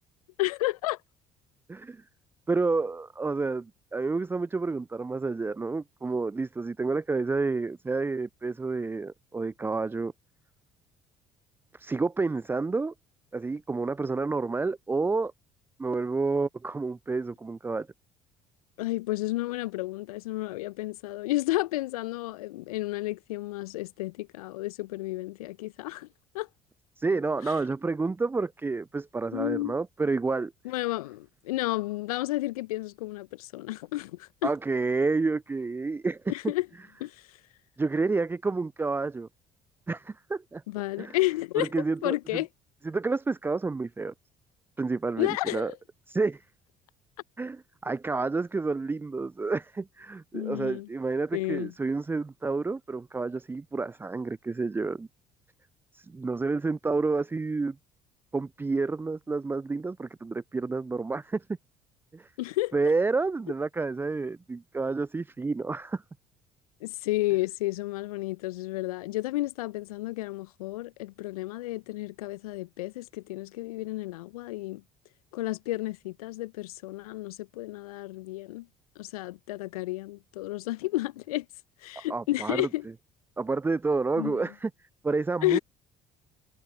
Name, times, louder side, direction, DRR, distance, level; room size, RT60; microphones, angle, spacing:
voice 1, 0.4-1.0 18.8-26.1 26.3-26.5 27.5-27.6 29.3-29.8 30.6-34.5 36.3-36.7 37.0-37.4 40.7-41.7 42.0-42.5 45.2-45.8 50.3-50.9 51.3-51.7 62.4-62.8 66.8-74.8 75.3-78.7 79.0-81.5 81.8-82.8 84.2-84.4 85.4-85.6, left 18 dB, 75° left, 1.0 m, -31 dB
voice 2, 1.7-2.0 2.5-10.1 11.7-12.9 13.3-15.3 15.8-17.9 27.0-30.5 34.4-36.2 37.8-39.3 39.9-40.6 41.0-41.2 41.6-42.2 42.8-44.1 44.8-45.7 46.1-46.4 47.4-55.1 55.9-57.8 58.3-61.4 62.1-62.3 62.7-66.0 82.0-82.7 83.4-84.7 85.0-85.6, right 3 dB, 10° right, 0.4 m, -29 dB
figure-of-eight pair, 55°, 19 cm